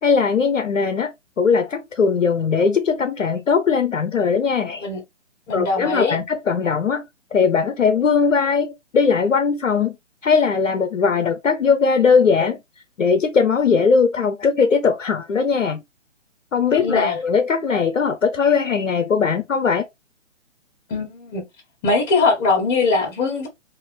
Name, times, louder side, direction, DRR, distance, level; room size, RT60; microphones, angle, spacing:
voice 1, 0.0-4.9 5.5-7.0 7.3-9.9 10.2-12.6 13.0-15.8 16.5-19.9, left 5 dB, 75° left, 0.7 m, -19 dB
voice 2, 5.5-6.2 16.7-17.2 20.9-21.4 21.8-23.5, left 3 dB, 40° left, 1.5 m, -21 dB
4.0 x 2.7 x 3.2 m
figure-of-eight pair, 130°, 38 cm